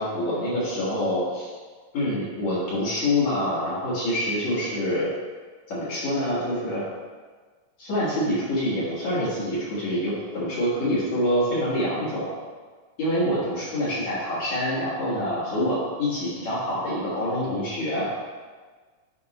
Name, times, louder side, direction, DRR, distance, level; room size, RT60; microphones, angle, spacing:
voice 1, 0.0-1.5 1.9-5.1 5.7-6.8 7.8-12.3 13.0-18.1, left 1 dB, 60° left, -10 dB, 3.1 m, -26 dB
9.5 x 3.7 x 4.3 m, 1.5 s
omnidirectional pair, 3.7 m